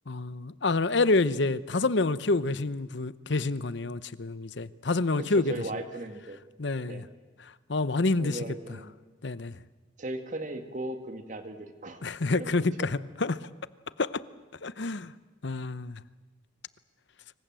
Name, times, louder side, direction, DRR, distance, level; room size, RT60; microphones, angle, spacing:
voice 1, 0.1-5.5 6.6-7.0 7.4-8.4 9.2-9.6 12.0-13.5 14.0-14.2 14.6-15.1 15.4-16.0, left 3 dB, 60° left, 0.8 m, -28 dB
voice 2, 5.2-6.4 6.8-7.1 8.2-9.0 10.0-12.0 12.3-12.9, right 1 dB, 40° right, 2.1 m, -37 dB
25.5 x 24.5 x 7.7 m
head